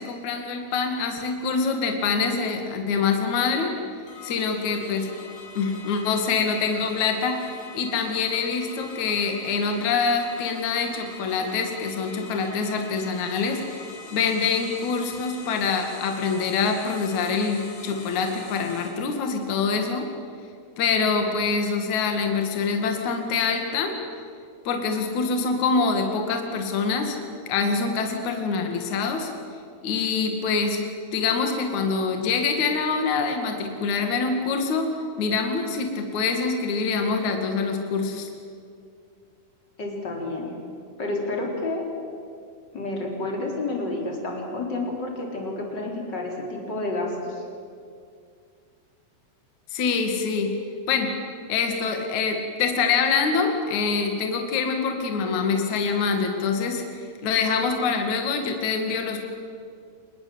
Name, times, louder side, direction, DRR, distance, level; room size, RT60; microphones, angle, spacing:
voice 1, 0.0-3.7 4.2-5.1 5.5-20.0 20.8-23.9 24.6-27.2 27.5-29.3 29.8-30.8 31.1-34.9 35.2-38.3 49.7-50.5 50.9-51.1 51.5-56.8 57.2-59.2, left 5 dB, 55° left, 4 dB, 3.2 m, -25 dB
sound 1, 4.1-18.9, left 3 dB, 85° left, 6.8 m, -43 dB
voice 2, 39.8-40.6 41.0-41.9 42.7-47.4, left 2 dB, 30° left, 0 dB, 4.3 m, -30 dB
25.5 x 22.0 x 7.9 m, 2.3 s
omnidirectional pair, 4.4 m